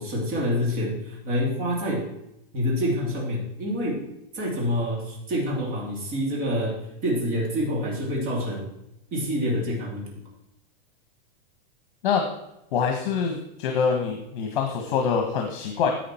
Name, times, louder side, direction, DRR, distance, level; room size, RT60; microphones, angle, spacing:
voice 1, 0.0-2.1 2.5-4.0 4.3-8.7 9.1-10.1, equal, 30° right, -2 dB, 2.7 m, -27 dB
voice 2, 12.7-15.9, left 6 dB, 60° left, 3 dB, 1.4 m, -25 dB
10.0 x 7.8 x 4.4 m, 0.83 s
supercardioid pair, 165°, 29 cm